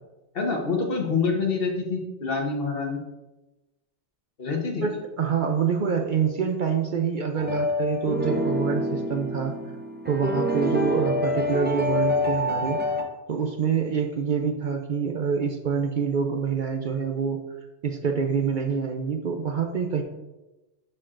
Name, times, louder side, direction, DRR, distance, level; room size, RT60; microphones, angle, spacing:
voice 1, 0.3-3.0 4.4-4.8, left 4 dB, 60° left, 1 dB, 1.3 m, -26 dB
voice 2, 4.8-9.6 10.1-12.8 13.3-17.4 17.8-20.0, right 6 dB, 55° right, 3 dB, 0.7 m, -26 dB
sound 1, 7.4-13.0, left 1 dB, 10° right, 0.5 m, -26 dB
11.5 x 4.4 x 2.5 m, 1.0 s
omnidirectional pair, 1.1 m